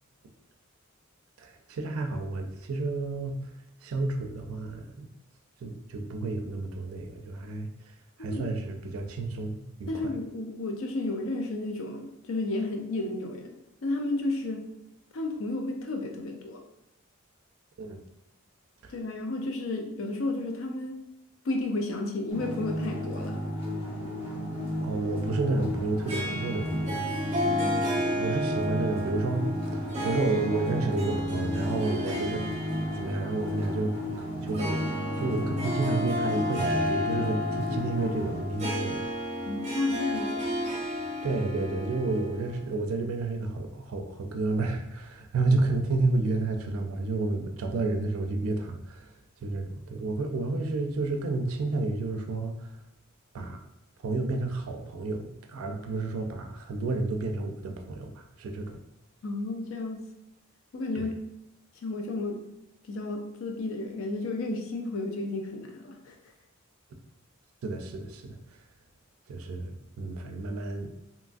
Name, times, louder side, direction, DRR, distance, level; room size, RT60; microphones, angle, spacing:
voice 1, 1.4-3.4 3.8-5.1 5.6-7.7 8.2-10.1 17.8-18.0 18.8-18.9 24.8-27.1 28.2-29.5 29.7-32.4 32.9-34.0 34.4-34.8 35.2-39.1 41.2-49.1 49.4-52.7 53.3-53.6 54.0-58.8 60.9-61.1 67.6-68.4 69.3-70.9, right 3 dB, 80° right, 4 dB, 0.4 m, -30 dB
voice 2, 9.9-13.5 13.8-14.6 15.1-16.6 18.9-21.0 21.4-23.4 27.4-28.0 39.4-40.5 59.2-60.0 60.7-61.2 61.8-62.5 62.9-66.2, left 2 dB, 70° left, 3 dB, 0.4 m, -32 dB
sound 1, 22.3-38.4, equal, 25° left, 0.9 m, -34 dB
Harp, 26.1-42.8, left 1 dB, 30° right, 0.5 m, -32 dB
2.9 x 2.3 x 2.5 m, 0.89 s
head